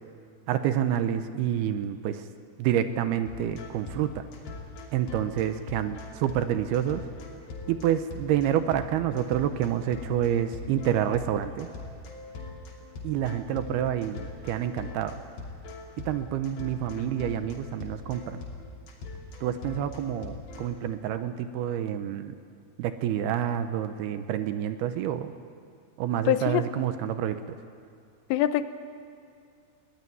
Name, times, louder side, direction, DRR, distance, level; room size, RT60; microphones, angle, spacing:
voice 1, 0.5-2.2 2.6-4.3 4.9-7.1 7.7-11.7 13.0-15.2 16.1-18.4 19.4-22.4 22.8-25.3 26.0-27.6, right 10 dB, 80° right, 10 dB, 2.5 m, -28 dB
sound 1, 3.3-20.7, left 3 dB, 70° left, 5.0 m, -41 dB
voice 2, 26.3-26.7 28.3-28.6, left 12 dB, 85° left, 11 dB, 3.0 m, -24 dB
20.0 x 17.5 x 9.7 m, 2.4 s
omnidirectional pair, 5.0 m